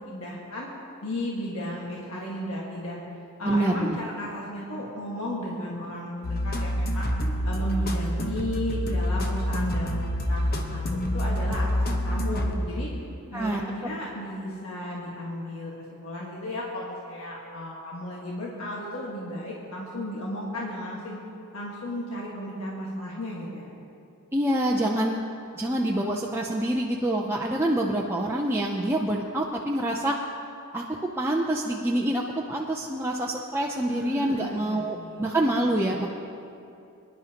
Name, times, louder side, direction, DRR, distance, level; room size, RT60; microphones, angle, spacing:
voice 1, 0.1-0.7 1.0-3.0 3.4-7.1 7.4-12.9 13.3-21.2 21.5-23.7 33.9-35.4, equal, 70° left, -4 dB, 1.6 m, -34 dB
voice 2, 3.4-4.0 13.3-13.6 24.3-25.2 25.6-30.2 30.7-30.8 31.2-36.1, right 1 dB, 10° right, -1 dB, 0.5 m, -26 dB
sound 1, 6.2-13.0, equal, 45° left, 0.9 m, -27 dB
22.5 x 10.5 x 2.9 m, 2.6 s
head